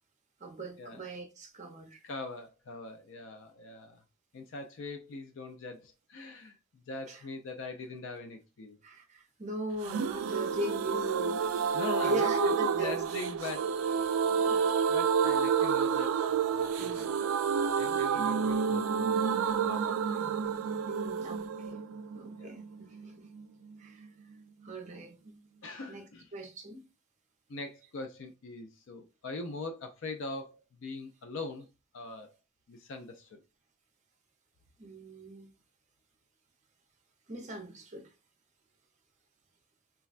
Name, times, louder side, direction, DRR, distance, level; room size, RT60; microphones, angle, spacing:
voice 1, 0.4-2.0 7.1-7.2 8.8-12.9 14.3-14.7 15.2-15.3 16.8-17.2 17.8-18.2 20.9-21.8 22.1-23.3 23.8-24.1 24.6-25.2 25.9-26.0 26.3-26.8 34.8-35.5 37.3-38.1, right 1 dB, 35° right, 0.6 m, -39 dB
voice 2, 2.0-4.0 4.3-8.8 11.7-14.2 14.9-20.3 21.9-22.0 22.3-22.5 25.6-26.3 27.5-31.7 31.9-32.3 32.7-33.4, left 3 dB, 65° left, 0.4 m, -42 dB
sound 1, 9.8-23.5 23.7-23.8 24.0-24.1, right 6 dB, 75° right, 0.3 m, -29 dB
3.4 x 2.1 x 2.4 m
head